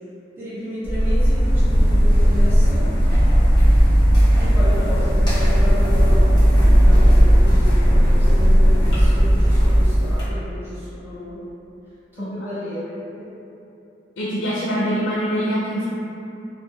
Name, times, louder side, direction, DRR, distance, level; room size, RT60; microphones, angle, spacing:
voice 1, 0.4-2.9 4.3-11.3 12.1-13.3, left 1 dB, 10° right, -12 dB, 0.7 m, -32 dB
Person Walking, 0.8-10.2, equal, 25° left, 0.8 m, -15 dB
voice 2, 14.2-15.8, equal, 75° left, -8 dB, 0.4 m, -23 dB
2.4 x 2.0 x 2.6 m, 2.8 s
head